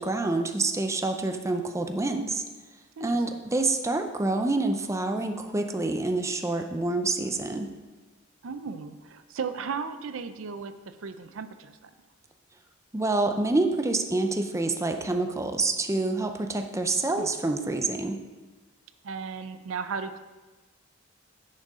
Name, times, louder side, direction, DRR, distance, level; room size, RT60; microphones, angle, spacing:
voice 1, 0.0-2.4 3.0-7.7 12.9-18.2, right 2 dB, 15° right, 5 dB, 0.5 m, -27 dB
voice 2, 3.0-3.4 8.4-11.9 17.1-17.3 19.0-20.2, right 5 dB, 75° right, 11 dB, 0.5 m, -36 dB
10.5 x 6.5 x 3.7 m, 1.2 s
head